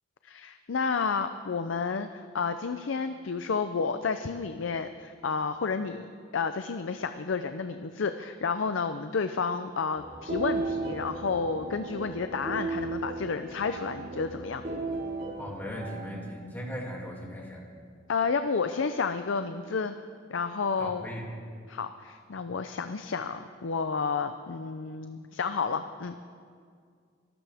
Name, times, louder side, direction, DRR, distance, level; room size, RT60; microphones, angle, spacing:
voice 1, 0.2-6.1 6.3-14.6 18.1-20.0 20.3-21.1 21.7-26.2, left 5 dB, 80° left, 9 dB, 0.5 m, -31 dB
sound 1, 10.0-16.1, right 3 dB, 60° right, 3.8 m, -35 dB
voice 2, 15.4-17.6 20.8-21.2, equal, 10° left, -3 dB, 2.6 m, -38 dB
25.0 x 12.0 x 3.5 m, 2.2 s
head